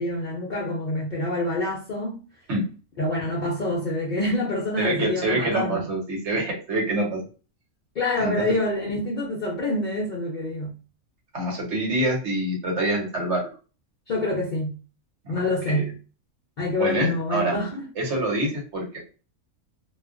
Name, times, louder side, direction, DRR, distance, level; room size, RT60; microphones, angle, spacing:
voice 1, 0.0-2.2 3.0-5.9 8.0-10.7 14.1-14.7 15.3-15.9 16.6-17.8, left 2 dB, 80° left, 0.4 m, -26 dB
voice 2, 4.8-7.2 8.1-8.5 11.3-13.5 15.7-15.8 16.8-17.6 18.0-19.0, right 1 dB, 55° right, 1.1 m, -26 dB
2.4 x 2.2 x 2.4 m
omnidirectional pair, 1.5 m